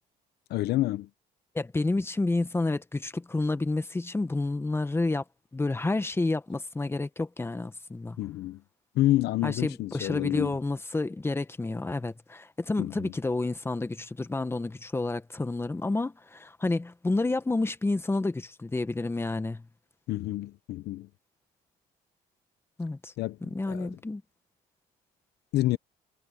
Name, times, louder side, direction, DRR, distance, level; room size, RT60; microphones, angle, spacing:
voice 1, 0.5-1.1 8.2-8.6 8.9-10.6 12.8-13.1 20.1-21.1 23.2-23.9 25.5-25.8, left 16 dB, 75° left, 0.9 m, -28 dB
voice 2, 1.5-5.2 5.5-8.2 9.4-19.6 22.8-23.1 23.4-24.2, left 2 dB, 15° left, 1.5 m, -30 dB
cardioid pair, 110°, 17 cm